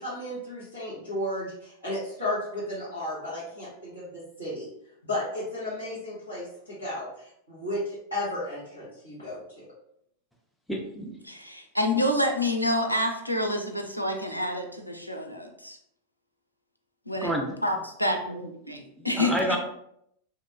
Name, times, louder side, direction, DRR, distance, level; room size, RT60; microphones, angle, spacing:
voice 1, 0.0-4.7 5.0-9.6, left 1 dB, 85° left, -13 dB, 1.2 m, -34 dB
voice 2, 10.7-11.2 17.2-17.5 19.1-19.6, equal, ahead, 1 dB, 0.5 m, -28 dB
voice 3, 11.2-15.8 17.1-17.3 17.6-19.6, left 1 dB, 90° right, 3 dB, 0.3 m, -28 dB
2.7 x 2.1 x 2.4 m, 0.74 s
figure-of-eight pair, 90°, 0 cm